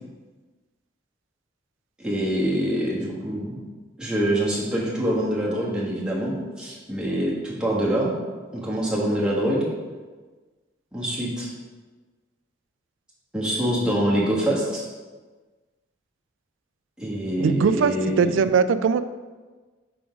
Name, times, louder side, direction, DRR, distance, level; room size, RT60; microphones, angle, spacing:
voice 1, 2.0-3.6 4.0-8.2 8.5-9.7 10.9-11.5 13.3-14.8 17.0-18.3, right 1 dB, 5° right, -6 dB, 1.2 m, -25 dB
voice 2, 17.4-19.0, right 6 dB, 80° right, 12 dB, 0.3 m, -20 dB
5.8 x 3.7 x 5.1 m, 1.3 s
head